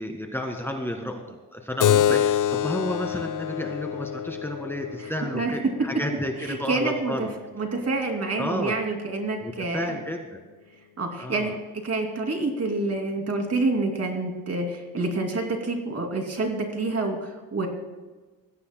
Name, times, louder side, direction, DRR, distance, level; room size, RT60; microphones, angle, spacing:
voice 1, 0.0-7.3 8.4-8.8 9.4-10.3 11.2-11.6, left 1 dB, 5° left, 2 dB, 1.8 m, -32 dB
Keyboard (musical), 1.8-6.9, left 10 dB, 65° left, 0.5 m, -27 dB
voice 2, 5.0-5.5 6.5-7.3 7.6-10.0 11.0-11.5 11.8-17.7, right 2 dB, 45° right, 3 dB, 2.6 m, -27 dB
21.0 x 15.5 x 2.2 m, 1.3 s
cardioid pair, 90°, 35 cm